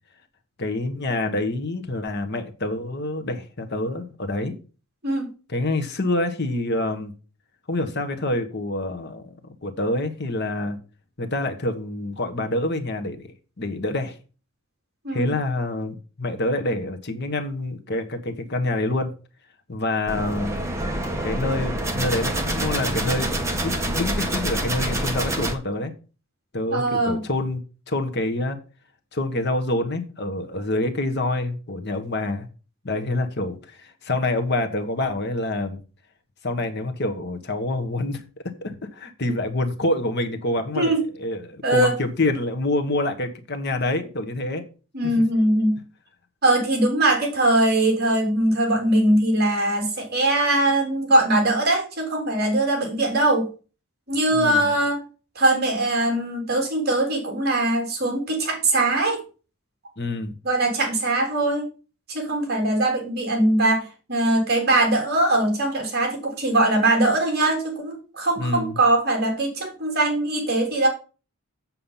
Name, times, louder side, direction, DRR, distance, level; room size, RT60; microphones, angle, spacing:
voice 1, 0.6-4.6 5.5-7.1 7.7-10.8 11.2-14.2 15.1-19.1 19.7-20.6 21.2-25.9 26.5-27.6 27.9-28.6 29.1-32.5 32.8-35.8 36.4-38.2 38.6-44.6 45.0-45.1 54.3-54.7 60.0-60.3 68.4-68.8, left 2 dB, 50° left, 1.2 m, -27 dB
sound 1, 20.1-25.5, right 1 dB, 15° right, 1.3 m, -26 dB
voice 2, 26.7-27.2 40.8-41.0 41.6-41.9 44.9-45.7 46.4-53.5 54.1-55.0 55.3-59.2 60.4-61.6 62.1-70.9, right 1 dB, 45° right, 3.5 m, -21 dB
7.7 x 7.2 x 5.6 m
head